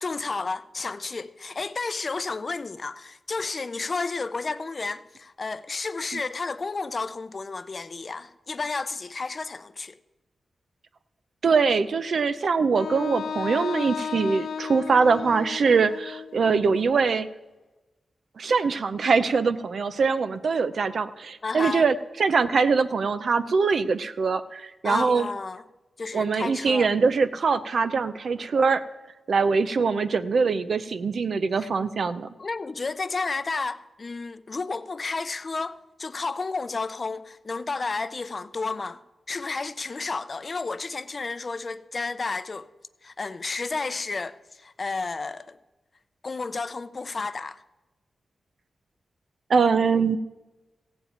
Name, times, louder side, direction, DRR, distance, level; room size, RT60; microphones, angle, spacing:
voice 1, 0.0-10.0 21.4-21.8 24.8-25.6 26.0-26.9 31.6-31.7 32.4-39.0 39.3-42.7 43.0-45.6 46.2-47.6, left 3 dB, 40° left, 0.6 m, -32 dB
voice 2, 11.4-17.3 18.4-25.3 26.1-28.8 29.3-32.3 49.5-50.2, right 5 dB, 65° right, 0.6 m, -23 dB
Wind instrument woodwind instrument, 12.8-16.8, left 6 dB, 90° left, 0.4 m, -34 dB
16.0 x 5.3 x 8.7 m
wide cardioid pair, 100°, 0 cm